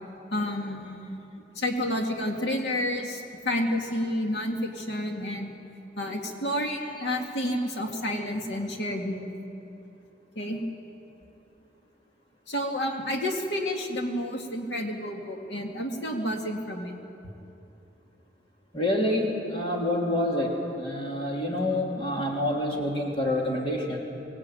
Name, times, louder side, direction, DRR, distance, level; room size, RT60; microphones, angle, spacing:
voice 1, 0.3-1.2 1.6-5.5 6.0-9.3 10.4-10.6 12.5-16.9, left 1 dB, 85° left, 2 dB, 2.2 m, -30 dB
voice 2, 18.7-24.0, left 1 dB, 30° left, -1 dB, 3.1 m, -27 dB
23.5 x 19.5 x 9.1 m, 2.8 s
head